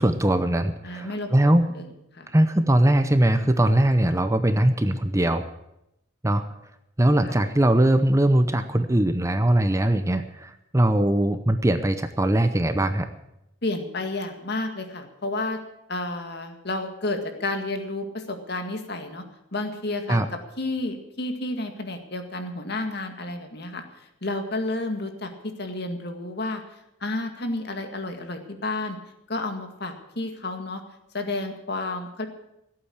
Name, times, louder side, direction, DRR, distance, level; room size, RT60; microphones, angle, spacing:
voice 1, 0.0-1.7 2.3-5.5 6.2-6.4 7.0-13.1 20.1-20.3, right 1 dB, 15° right, 9 dB, 0.7 m, -21 dB
voice 2, 0.8-1.9 2.1-2.3 7.2-7.4 13.6-15.6 15.9-19.2 19.5-20.2 20.6-23.8 24.2-26.6 27.0-29.0 29.3-30.8 31.1-32.3, left 2 dB, 55° left, 6 dB, 2.0 m, -31 dB
16.5 x 8.7 x 8.7 m, 0.83 s
head